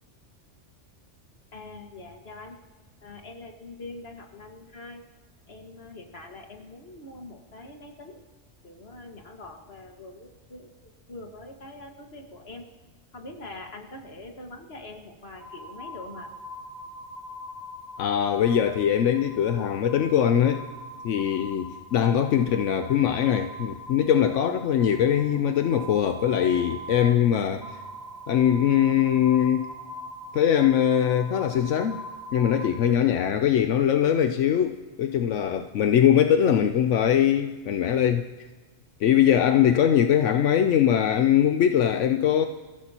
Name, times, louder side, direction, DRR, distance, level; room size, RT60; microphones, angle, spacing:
voice 1, 1.5-2.6 3.0-5.0 5.5-8.2 8.6-12.6 13.1-16.3, left 2 dB, 55° left, 2 dB, 2.0 m, -43 dB
sound 1, 15.4-32.7, equal, 55° right, 3.8 m, -42 dB
voice 2, 18.0-20.7 21.0-27.8 28.3-29.7 30.3-32.0 32.3-38.3 39.0-42.5, left 9 dB, 85° left, 7 dB, 1.0 m, -22 dB
29.0 x 16.0 x 2.9 m, 1.3 s
omnidirectional pair, 1.2 m